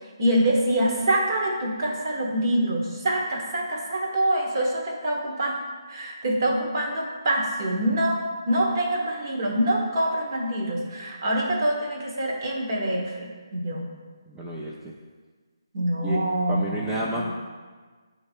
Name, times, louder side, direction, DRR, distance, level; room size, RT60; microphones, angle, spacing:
voice 1, 0.2-5.5 5.9-8.2 8.5-13.9 15.7-17.0, right 1 dB, 50° right, -2 dB, 1.3 m, -25 dB
voice 2, 14.3-14.9 16.0-16.2 16.5-17.3, right 1 dB, 5° right, -6 dB, 0.4 m, -30 dB
7.4 x 2.8 x 4.5 m, 1.4 s
figure-of-eight pair, 155°, 2 cm